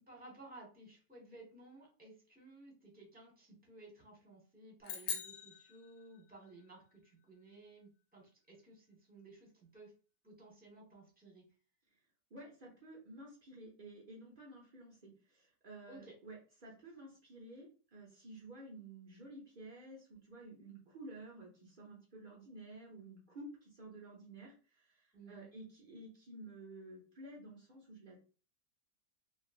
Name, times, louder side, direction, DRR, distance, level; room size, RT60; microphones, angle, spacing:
voice 1, 0.1-9.9 10.2-11.4 15.9-16.1 25.1-25.5, right 2 dB, 5° right, -2 dB, 0.8 m, -56 dB
sound 1, 4.8-6.5, left 6 dB, 75° left, 1.3 m, -43 dB
voice 2, 12.3-28.2, right 2 dB, 85° right, -3 dB, 0.4 m, -52 dB
3.3 x 2.4 x 2.4 m, 0.37 s
omnidirectional pair, 2.0 m